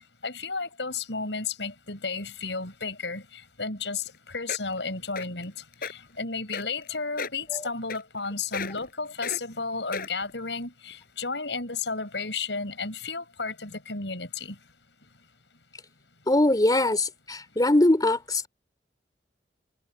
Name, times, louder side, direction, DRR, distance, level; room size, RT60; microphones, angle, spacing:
voice 1, 0.2-14.6, left 4 dB, 85° left, 6.4 m, -33 dB
sound 1, 4.1-4.2 4.5-4.8 5.2-5.4 5.7-5.9 6.5-6.9 7.2-7.4 7.9-8.3 8.5-8.9 9.2-9.4 9.9-10.3 10.9-11.0, left 5 dB, 55° left, 7.8 m, -34 dB
voice 2, 16.3-18.5, left 1 dB, 25° left, 2.8 m, -22 dB
head